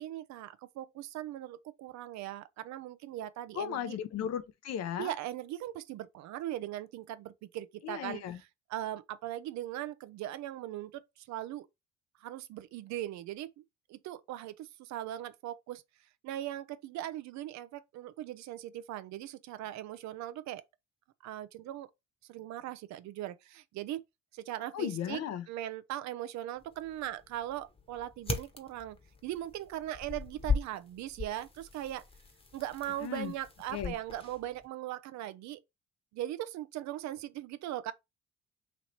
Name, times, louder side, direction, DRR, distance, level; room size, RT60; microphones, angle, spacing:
voice 1, 0.0-4.0 5.0-11.7 12.2-13.6 13.9-15.8 16.2-20.6 21.2-21.9 22.3-24.0 24.3-25.2 25.5-29.0 29.2-32.0 32.5-35.6 36.1-37.9, right 13 dB, 70° right, 0.6 m, -39 dB
voice 2, 3.5-5.1 7.8-8.4 24.7-25.4 33.0-33.3 33.7-33.9, left 9 dB, 60° left, 0.7 m, -36 dB
sound 1, 26.6-34.7, left 4 dB, 20° left, 1.0 m, -39 dB
3.1 x 2.8 x 4.2 m
supercardioid pair, 65°, 29 cm